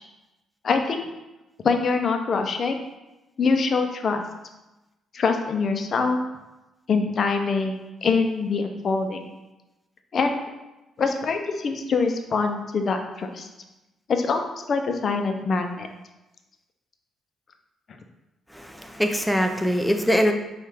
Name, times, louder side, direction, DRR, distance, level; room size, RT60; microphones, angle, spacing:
voice 1, 0.6-1.1 1.6-2.8 3.4-4.2 5.1-6.2 6.9-7.7 8.0-9.2 10.1-10.4 11.0-13.5 14.1-14.4 14.7-15.9, left 4 dB, 50° left, 5 dB, 0.5 m, -24 dB
voice 2, 18.5-20.3, equal, ahead, 5 dB, 0.4 m, -22 dB
5.3 x 2.4 x 3.3 m, 1.0 s
cardioid pair, 90°, 0 cm